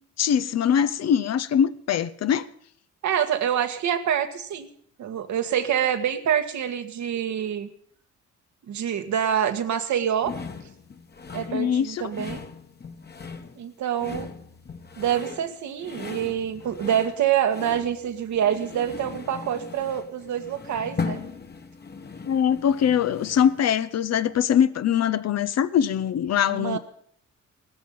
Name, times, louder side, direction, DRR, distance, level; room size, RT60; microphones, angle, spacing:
voice 1, 0.2-2.5 11.5-12.1 22.2-26.8, left 8 dB, 60° left, 0.8 m, -22 dB
voice 2, 3.0-4.7 5.0-7.7 8.7-10.3 11.3-12.4 13.5-14.3 15.0-21.2 26.5-26.8, right 9 dB, 70° right, 1.6 m, -26 dB
sound 1, 10.2-23.7, left 5 dB, 35° left, 1.5 m, -38 dB
16.5 x 13.5 x 5.5 m
cardioid pair, 90°, 30 cm